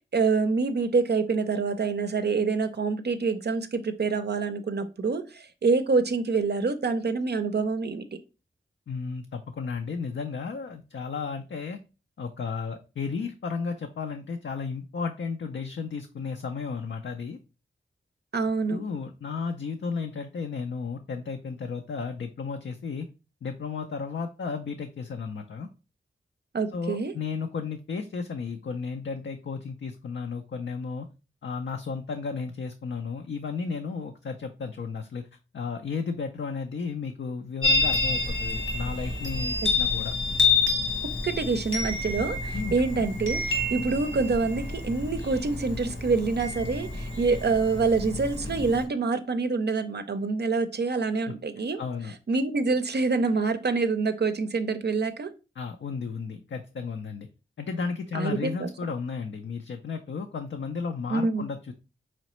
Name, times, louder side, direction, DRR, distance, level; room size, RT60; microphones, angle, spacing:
voice 1, 0.1-8.0 18.3-18.8 26.5-27.1 41.2-51.8 52.3-55.3 58.1-58.7 61.1-61.4, right 4 dB, 55° right, 8 dB, 0.5 m, -26 dB
voice 2, 8.9-11.8 12.2-17.4 18.7-23.1 23.4-25.7 26.7-31.1 31.4-35.2 35.5-40.1 42.5-42.7 51.8-52.1 55.6-57.3 57.6-61.7, left 5 dB, 60° left, 5 dB, 0.4 m, -33 dB
Chime, 37.6-48.8, left 3 dB, 80° left, 1.4 m, -28 dB
3.9 x 3.1 x 3.0 m, 0.31 s
cardioid pair, 40°, 21 cm